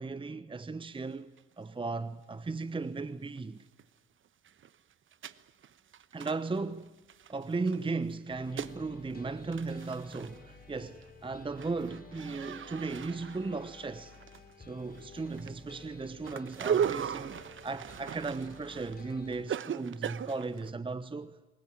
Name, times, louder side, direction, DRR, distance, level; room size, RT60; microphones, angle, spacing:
voice 1, 0.0-3.7 6.1-6.9 7.3-14.1 14.6-21.5, right 3 dB, 15° right, 1.0 m, -36 dB
sound 1, 1.4-1.5 1.9-2.0 3.4-3.5 3.8-3.9 4.3-7.8 8.1-8.8 9.1-9.2 9.4-10.4 10.8-11.1 11.4-14.7 14.9-20.7, right 8 dB, 40° right, 1.1 m, -38 dB
sound 2, 8.3-19.4, left 3 dB, 30° left, 6.6 m, -53 dB
28.0 x 22.0 x 9.0 m
hypercardioid pair, 55°, 31 cm